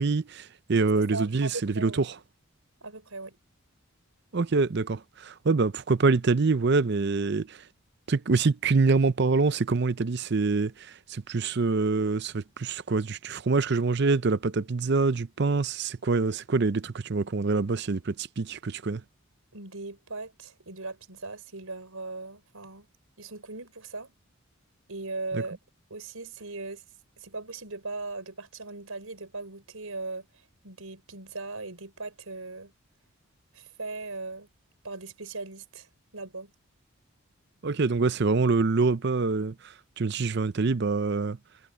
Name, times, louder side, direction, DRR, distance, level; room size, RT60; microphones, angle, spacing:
voice 1, 0.0-1.9 4.3-7.6 8.1-10.7 11.1-19.0 25.3-25.4 37.6-39.5 40.0-41.4, right 4 dB, 50° right, 0.6 m, -25 dB
voice 2, 1.0-2.1 2.8-3.4 19.5-22.9 23.2-24.1 24.9-25.6 25.9-26.8 27.2-30.3 30.6-32.7 33.5-34.5 34.8-36.5, right 3 dB, 85° right, 5.1 m, -38 dB
head